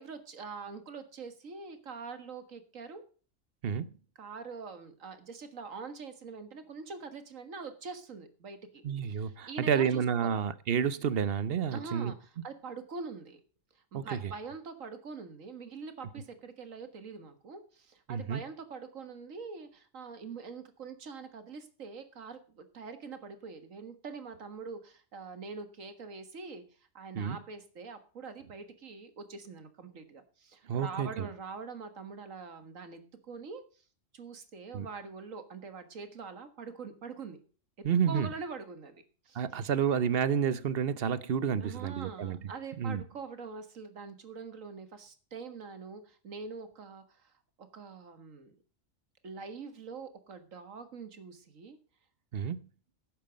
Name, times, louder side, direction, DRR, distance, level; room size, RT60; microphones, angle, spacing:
voice 1, 0.0-3.0 4.2-8.8 9.1-10.4 11.7-13.4 13.9-26.6 26.9-33.6 34.1-37.4 38.1-39.6 41.6-47.3 47.6-48.6 49.2-51.8, right 4 dB, 85° right, 2.0 m, -44 dB
voice 2, 8.8-12.1 13.9-14.3 18.1-18.4 27.1-27.4 30.6-31.3 34.7-34.9 37.8-38.3 39.3-42.5 42.8-43.0 52.3-52.6, right 7 dB, 55° right, 0.9 m, -30 dB
11.5 x 9.0 x 5.1 m
omnidirectional pair, 1.3 m